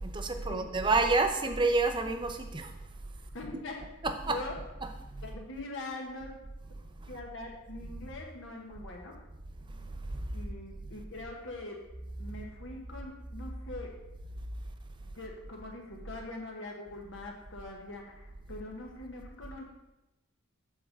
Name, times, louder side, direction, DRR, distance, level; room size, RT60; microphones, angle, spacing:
voice 1, 0.0-2.7 4.0-4.4 4.8-4.9 10.1-10.2, right 3 dB, 20° right, 6 dB, 0.6 m, -28 dB
voice 2, 3.3-3.7 4.3-4.5 5.2-6.3 7.1-9.1 10.3-11.8 12.2-13.9 15.0-19.6, left 2 dB, 60° left, 0 dB, 1.2 m, -43 dB
7.7 x 3.8 x 6.6 m, 0.99 s
head